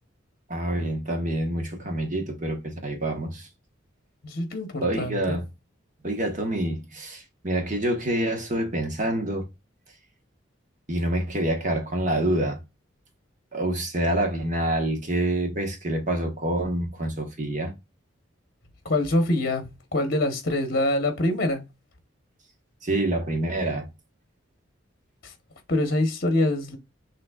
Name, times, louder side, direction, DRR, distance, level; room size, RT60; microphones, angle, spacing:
voice 1, 0.5-3.5 4.8-5.5 6.0-9.5 10.9-12.6 13.5-17.7 22.8-23.9, right 1 dB, 40° right, 1.2 m, -27 dB
voice 2, 4.2-5.4 18.8-21.6 25.2-25.3 25.7-26.8, left 1 dB, 50° left, 1.1 m, -25 dB
6.4 x 3.2 x 2.4 m
head